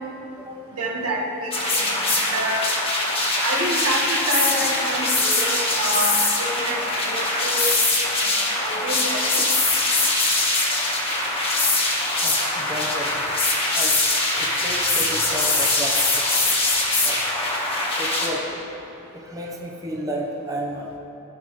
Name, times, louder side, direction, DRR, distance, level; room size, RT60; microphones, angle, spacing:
voice 1, 0.7-2.7 3.4-7.7 8.2-9.4, right 1 dB, 85° right, -2 dB, 1.6 m, -28 dB
sound 1, 1.5-18.3, left 2 dB, 25° left, 1.4 m, -22 dB
voice 2, 12.2-13.2 13.7-14.0 14.4-16.7 17.0-17.2 17.6-18.8 19.1-20.9, equal, 15° right, -2 dB, 0.9 m, -33 dB
16.5 x 6.1 x 3.2 m, 3.0 s
head